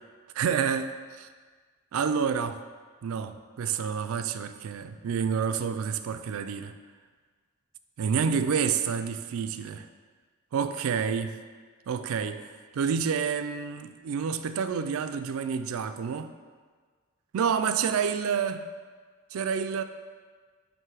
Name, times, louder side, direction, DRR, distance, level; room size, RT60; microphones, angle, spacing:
voice 1, 0.4-0.9 1.2-1.3 1.9-2.6 3.0-6.7 8.0-9.9 10.5-11.4 11.9-12.4 12.7-16.3 17.3-18.6 19.3-19.8, right 6 dB, 75° right, 10 dB, 0.3 m, -28 dB
7.5 x 2.7 x 4.8 m, 1.5 s
head